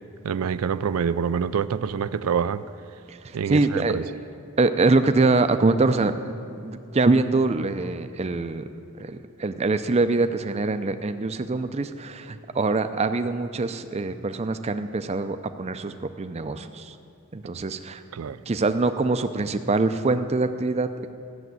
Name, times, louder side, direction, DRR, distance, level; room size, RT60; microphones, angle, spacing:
voice 1, 0.2-2.6 3.3-4.0 18.1-18.4, right 7 dB, 85° right, 13 dB, 0.4 m, -26 dB
voice 2, 3.1-4.2 4.6-6.2 6.5-8.6 9.0-16.9 17.3-18.0 18.5-21.1, right 3 dB, 30° right, 9 dB, 0.5 m, -24 dB
14.0 x 7.2 x 9.4 m, 2.5 s
head